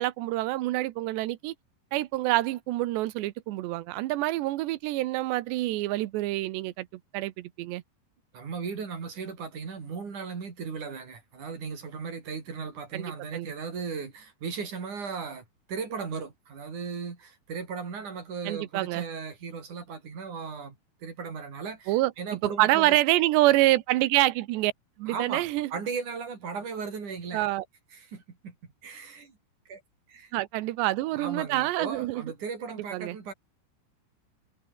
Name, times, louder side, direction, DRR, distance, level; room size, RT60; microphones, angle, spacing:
voice 1, 0.0-1.5 1.9-6.9 7.1-7.8 12.9-13.0 13.3-13.5 18.5-19.0 21.9-24.7 25.0-25.7 27.3-27.6 30.3-32.2 32.7-33.2, right 17 dB, 80° right, 3.2 m, -26 dB
voice 2, 8.3-20.8 21.0-23.0 25.1-27.4 27.9-28.6 28.8-29.4 29.7-29.8 30.1-30.3 31.1-33.3, right 5 dB, 45° right, 5.6 m, -37 dB
omnidirectional pair, 5.0 m